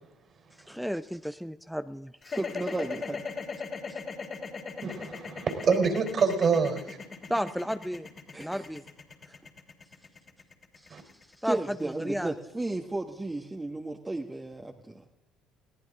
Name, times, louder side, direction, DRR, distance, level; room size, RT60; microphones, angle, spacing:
voice 1, 0.7-2.1 7.3-8.1 8.4-8.8 11.4-11.6 11.8-12.3, equal, ahead, 11 dB, 0.7 m, -32 dB
sound 1, 2.2-12.4, left 5 dB, 40° left, 3.2 m, -39 dB
voice 2, 2.2-3.2 8.3-8.7 10.9-11.0 11.4-15.0, right 2 dB, 15° right, 0 dB, 1.6 m, -34 dB
voice 3, 4.8-7.0 10.9-11.0, right 5 dB, 45° right, 5 dB, 3.7 m, -26 dB
21.5 x 17.5 x 3.7 m, 0.96 s
hypercardioid pair, 55°, 0 cm